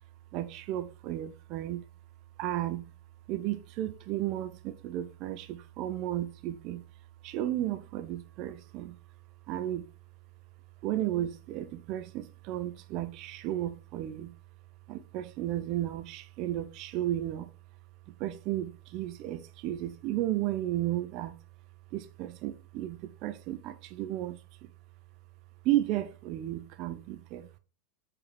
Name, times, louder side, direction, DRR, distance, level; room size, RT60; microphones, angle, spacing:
voice 1, 0.3-1.8 2.4-2.9 3.3-6.8 7.2-9.0 9.5-9.9 10.8-14.3 14.9-17.5 18.1-21.4 21.9-24.7 25.6-27.6, right 13 dB, 40° right, 0.6 m, -33 dB
7.1 x 4.9 x 4.3 m
figure-of-eight pair, 90°, 0 cm